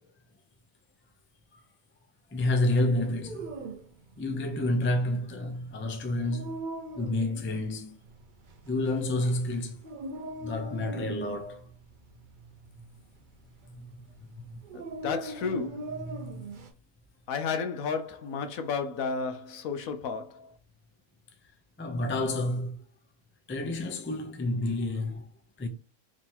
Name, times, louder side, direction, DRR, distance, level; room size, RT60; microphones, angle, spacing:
voice 1, 2.3-3.5 4.2-6.6 7.0-7.9 8.7-9.7 10.4-11.6 13.7-13.9 16.1-16.4 21.8-22.8 23.5-25.3 25.6-25.7, left 1 dB, 15° left, 0.4 m, -29 dB
Dog, 3.0-16.7, right 2 dB, 45° right, 0.7 m, -42 dB
voice 2, 14.7-15.8 17.3-20.5, left 5 dB, 75° left, 1.2 m, -32 dB
3.6 x 3.0 x 4.3 m
omnidirectional pair, 1.5 m